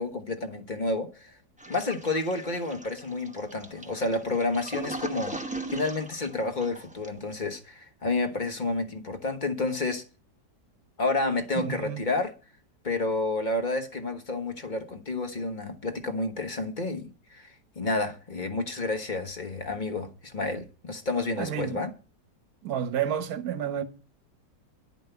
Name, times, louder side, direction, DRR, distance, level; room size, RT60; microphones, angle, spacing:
voice 1, 0.0-1.4 1.7-5.4 5.7-10.0 11.0-12.3 12.8-21.9, left 2 dB, 30° left, 1.0 m, -30 dB
Toilet flush, 1.6-7.3, right 2 dB, 10° right, 0.5 m, -40 dB
voice 2, 11.6-12.0 21.4-21.8 22.6-23.8, right 9 dB, 60° right, 1.4 m, -30 dB
11.0 x 5.2 x 7.9 m
omnidirectional pair, 1.9 m